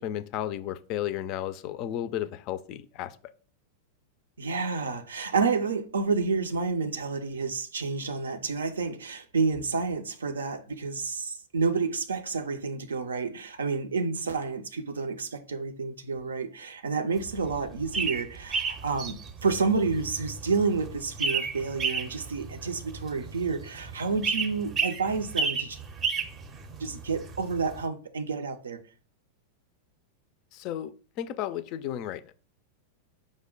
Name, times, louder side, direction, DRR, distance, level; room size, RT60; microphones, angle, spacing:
voice 1, 0.0-3.2 30.5-32.2, left 11 dB, 45° left, 0.3 m, -33 dB
voice 2, 4.4-25.8 26.8-28.8, right 4 dB, 80° right, 0.4 m, -29 dB
sound 1, 17.2-27.8, right 5 dB, 30° right, 0.5 m, -33 dB
4.9 x 2.1 x 3.7 m
figure-of-eight pair, 95°, 0 cm